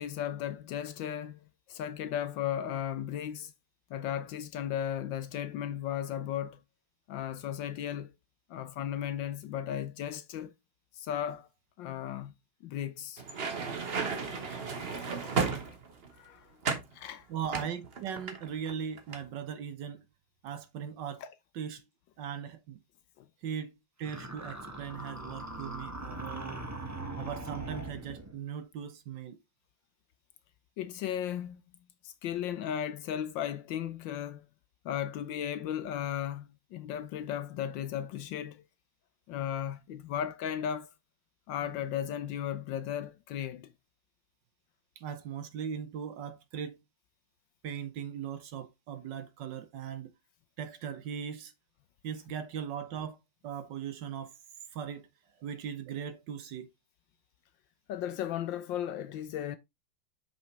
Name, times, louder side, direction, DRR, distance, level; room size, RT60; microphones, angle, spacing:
voice 1, 0.0-3.5 3.9-6.6 7.1-8.1 8.5-10.5 10.9-11.5 11.8-12.3 12.6-13.2 14.9-15.5 16.2-16.6 16.9-17.3 21.2-21.3 23.2-23.3 26.1-26.2 30.8-31.6 32.0-34.4 34.8-38.6 39.3-40.9 41.5-43.7 57.9-59.6, left 10 dB, 70° left, 1.2 m, -36 dB
sound 1, 13.2-16.1 16.6-16.9 17.5-18.7 19.0-19.2, right 5 dB, 40° right, 0.9 m, -33 dB
voice 2, 17.3-20.1 20.4-21.2 21.5-21.8 22.2-22.8 23.4-26.6 27.2-29.4 45.0-46.8 47.6-50.1 50.6-51.5 52.0-54.3 54.7-55.1 55.4-56.7, right 8 dB, 65° right, 1.3 m, -39 dB
sound 2, 24.0-28.4, right 2 dB, 15° right, 0.7 m, -41 dB
6.3 x 5.5 x 3.2 m
omnidirectional pair, 2.3 m